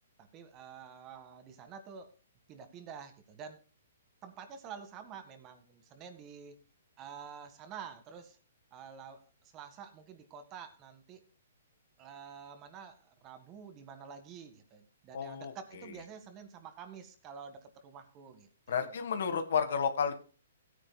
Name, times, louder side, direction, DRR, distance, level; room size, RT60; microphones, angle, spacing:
voice 1, 0.2-2.1 2.5-3.6 4.2-6.6 7.0-8.4 8.7-11.2 12.0-19.0, right 7 dB, 30° right, 8 dB, 1.6 m, -49 dB
voice 2, 15.1-15.9 18.7-20.1, left 6 dB, 65° left, 9 dB, 1.5 m, -32 dB
16.5 x 9.6 x 2.3 m, 0.37 s
hypercardioid pair, 135°, 0 cm